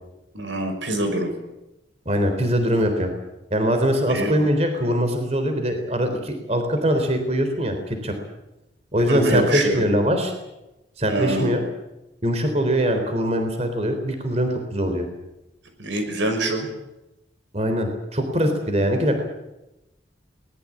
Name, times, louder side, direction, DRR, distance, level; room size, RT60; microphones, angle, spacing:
voice 1, 0.3-1.3 4.1-4.4 9.1-9.8 11.1-11.5 15.8-16.7, right 1 dB, 90° right, 6 dB, 5.9 m, -24 dB
voice 2, 2.1-3.1 3.5-8.1 8.9-10.3 11.0-11.6 12.2-15.0 17.5-19.2, equal, 35° right, 6 dB, 3.8 m, -22 dB
23.0 x 20.0 x 8.7 m, 0.95 s
head